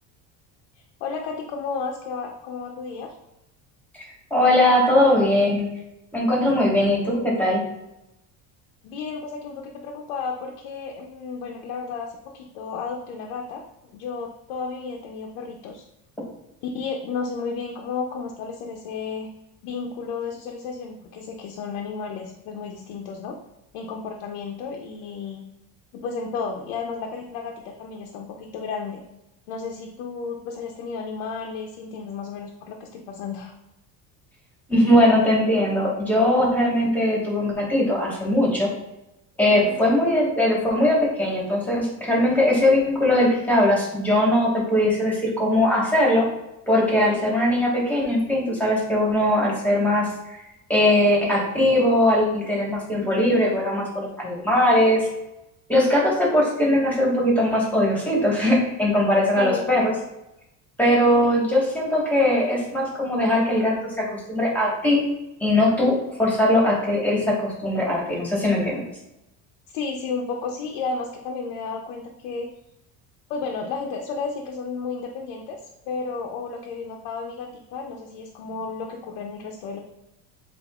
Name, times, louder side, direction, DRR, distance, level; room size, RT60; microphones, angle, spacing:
voice 1, 1.0-3.1 8.8-13.6 13.9-15.8 16.6-19.3 19.6-23.4 23.7-25.4 25.9-29.0 29.5-33.5 39.4-39.8 59.4-59.7 69.7-72.5 73.3-75.6 75.9-79.8, left 5 dB, 85° left, 2 dB, 0.7 m, -32 dB
voice 2, 4.0-5.7 6.1-7.6 34.7-38.7 39.4-46.2 46.7-50.1 50.7-55.1 55.7-59.9 60.8-65.0 65.4-68.8, left 1 dB, 5° left, -3 dB, 1.3 m, -20 dB
7.7 x 2.6 x 2.3 m, 0.89 s
cardioid pair, 155°, 40 cm